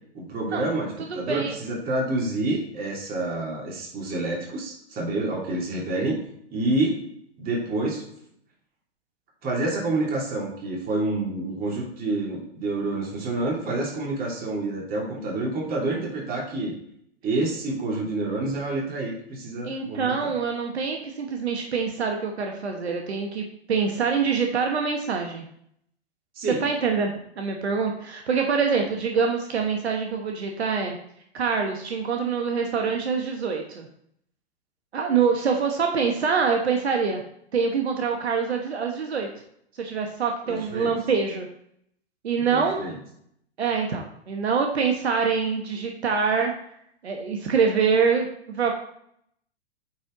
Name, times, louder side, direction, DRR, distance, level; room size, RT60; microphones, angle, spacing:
voice 1, 0.1-6.2 6.5-7.0 7.4-8.0 9.4-16.7 17.2-20.3 26.3-26.6 40.5-40.9 42.5-43.0, right 2 dB, 30° right, -2 dB, 2.8 m, -28 dB
voice 2, 1.1-1.6 19.6-25.5 26.6-31.0 31.3-33.9 34.9-37.2 37.5-39.3 39.8-41.5 42.2-42.8 43.6-46.5 47.0-48.7, right 5 dB, 80° right, 2 dB, 1.3 m, -25 dB
8.7 x 4.4 x 3.9 m, 0.70 s
hypercardioid pair, 110°, 32 cm